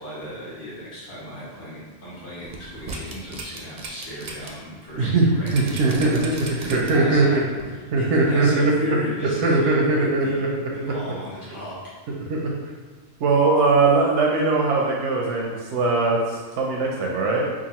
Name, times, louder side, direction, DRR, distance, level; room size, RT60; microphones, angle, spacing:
voice 1, 0.0-6.7 6.9-7.4 7.7-10.4 10.7-11.7, equal, 50° left, -10 dB, 1.5 m, -36 dB
sound 1, 2.4-4.5 4.9-5.0 5.5-7.1 7.6-7.7, right 3 dB, 50° right, 0.5 m, -36 dB
voice 2, 5.0-6.4 6.6-7.3 7.9-8.9 9.2-10.9 12.3-12.7 13.2-17.5, right 3 dB, 85° right, -2 dB, 0.9 m, -21 dB
4.9 x 2.4 x 2.9 m, 1.5 s
omnidirectional pair, 1.2 m